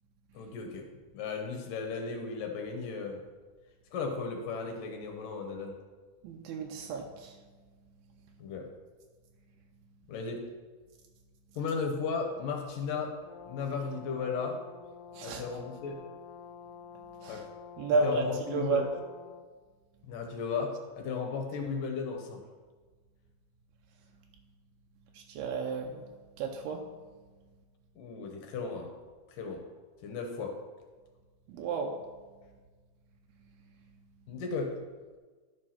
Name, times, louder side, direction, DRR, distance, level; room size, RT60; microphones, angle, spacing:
voice 1, 0.3-0.9 1.1-3.2 3.9-5.8 8.4-8.7 10.1-10.5 11.6-13.2 13.5-14.6 15.2-16.0 17.3-17.5 18.0-18.9 20.1-22.4 28.0-29.0 29.4-29.7 30.0-30.6 34.3-34.8, left 5 dB, 70° left, 3 dB, 2.3 m, -35 dB
voice 2, 6.2-7.4 8.2-8.4 15.1-15.4 16.9-17.5 17.8-18.9 25.1-26.9 31.5-32.0 33.6-33.7, right 4 dB, 80° right, 2 dB, 2.6 m, -33 dB
Brass instrument, 13.2-19.5, left 7 dB, 90° left, 2.6 m, -49 dB
11.5 x 5.3 x 5.7 m, 1.4 s
omnidirectional pair, 4.5 m